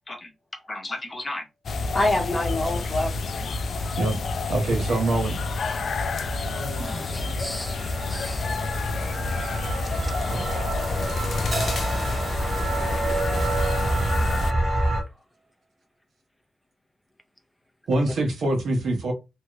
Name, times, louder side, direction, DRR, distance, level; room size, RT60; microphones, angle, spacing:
voice 1, 0.7-1.5 1.9-3.1, left 2 dB, 30° left, 1.1 m, -26 dB
sound 1, 1.6-14.5, left 3 dB, 65° left, 0.4 m, -29 dB
sound 2, 4.5-15.0, right 1 dB, 20° right, 1.1 m, -29 dB
voice 2, 4.5-5.4 10.3-10.4 17.9-19.1, right 2 dB, 80° right, 1.0 m, -24 dB
voice 3, 6.7-8.5 9.4-10.2 11.2-11.3 12.9-13.1 14.6-14.9, left 1 dB, 10° left, 0.6 m, -41 dB
Crash cymbal, 11.5-14.2, right 3 dB, 35° right, 0.7 m, -37 dB
2.8 x 2.4 x 3.0 m
cardioid pair, 100°, 0 cm